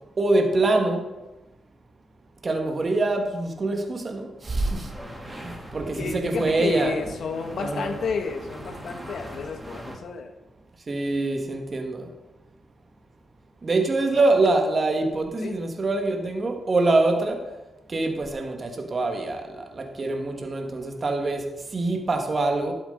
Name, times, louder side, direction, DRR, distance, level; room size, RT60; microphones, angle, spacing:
voice 1, 0.2-1.0 2.4-4.9 5.3-7.0 7.5-7.9 10.9-12.1 13.6-17.4 17.9-22.7, right 2 dB, 40° right, 3 dB, 1.9 m, -24 dB
sound 1, 4.4-10.0, right 1 dB, 15° right, 2.8 m, -41 dB
voice 2, 5.8-10.3 14.1-14.2 15.4-15.6, left 5 dB, 70° left, 6 dB, 1.3 m, -31 dB
12.0 x 7.8 x 4.0 m, 1.0 s
cardioid pair, 65°, 0 cm